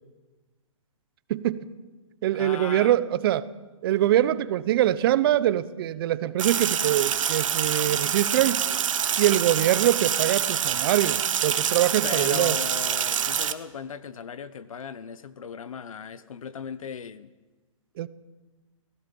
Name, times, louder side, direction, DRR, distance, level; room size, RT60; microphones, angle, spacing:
voice 1, 1.3-1.7 2.2-3.5 3.8-8.6 9.2-12.6 18.0-18.1, right 12 dB, 45° right, 0.9 m, -23 dB
voice 2, 2.3-3.0 12.0-17.3, left 7 dB, 80° left, 1.0 m, -37 dB
Sink (filling or washing), 6.4-13.5, right 9 dB, 70° right, 1.2 m, -26 dB
29.5 x 16.0 x 5.4 m
hypercardioid pair, 150°, 17 cm